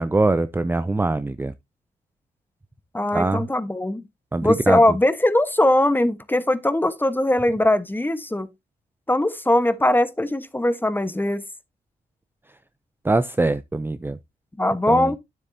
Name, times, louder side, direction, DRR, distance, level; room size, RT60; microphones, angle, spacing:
voice 1, 0.0-1.5 3.1-3.4 4.3-4.8 13.0-14.2 14.9-15.1, right 2 dB, 10° right, 0.5 m, -22 dB
voice 2, 2.9-4.0 4.4-8.5 9.1-11.4 14.6-15.2, left 1 dB, 10° left, 1.1 m, -20 dB
9.4 x 7.9 x 2.7 m
cardioid pair, 70°, 17 cm